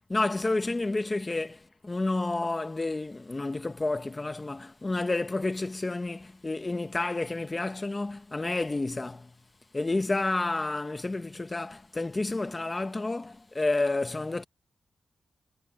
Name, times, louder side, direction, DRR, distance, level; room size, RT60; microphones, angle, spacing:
voice 1, 0.1-9.3 9.7-14.4, left 2 dB, 25° left, 1.1 m, -30 dB
wide cardioid pair, 95°, 0 cm